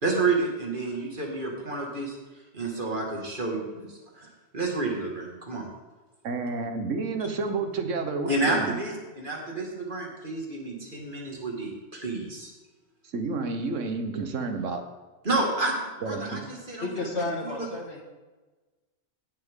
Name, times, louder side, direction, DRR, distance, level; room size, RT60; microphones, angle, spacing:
voice 1, 0.0-2.2 2.5-4.3 4.5-5.7 8.3-12.5 15.2-16.9 17.4-17.7, right 3 dB, 45° right, -1 dB, 2.3 m, -30 dB
voice 2, 6.2-8.8 13.1-14.8 16.0-16.4, right 3 dB, 90° right, 6 dB, 1.4 m, -30 dB
voice 3, 16.8-18.0, left 2 dB, 60° left, 1 dB, 2.1 m, -32 dB
16.0 x 7.5 x 3.8 m, 1.2 s
omnidirectional pair, 1.2 m